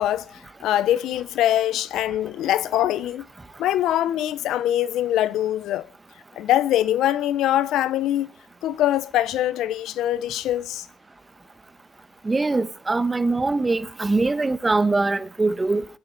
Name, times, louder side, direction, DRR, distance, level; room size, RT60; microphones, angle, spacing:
voice 1, 0.0-3.3 3.6-5.9 6.4-8.3 8.6-10.8, left 12 dB, 85° left, 0.8 m, -23 dB
voice 2, 12.2-15.9, right 3 dB, 20° right, 1.1 m, -22 dB
24.0 x 9.6 x 4.0 m
cardioid pair, 90°, 0 cm